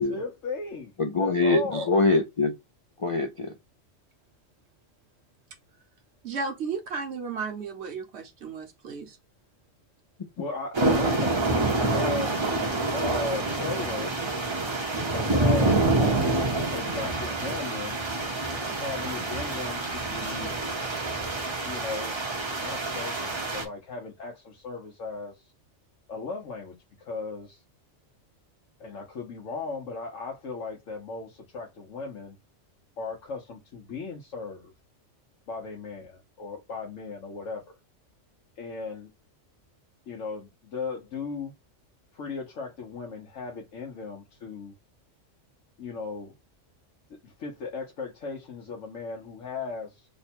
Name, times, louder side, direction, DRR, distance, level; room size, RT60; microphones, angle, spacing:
voice 1, 0.0-0.9 1.2-1.9 10.4-11.4 11.7-12.4 12.9-14.1 15.1-16.4 16.7-18.1 18.7-20.6 21.6-25.5 26.1-26.7 27.0-27.6 28.8-32.4 33.0-34.7 35.5-37.6 38.6-39.1 40.1-41.5 42.1-44.7 45.8-46.3 47.2-50.1, left 4 dB, 80° left, 1.2 m, -36 dB
voice 2, 1.0-2.5 3.0-3.5, left 3 dB, 55° left, 0.3 m, -24 dB
voice 3, 6.2-9.2, right 5 dB, 60° right, 1.1 m, -34 dB
sound 1, 10.7-23.6, right 2 dB, 30° right, 0.6 m, -27 dB
3.3 x 2.2 x 4.1 m
omnidirectional pair, 1.3 m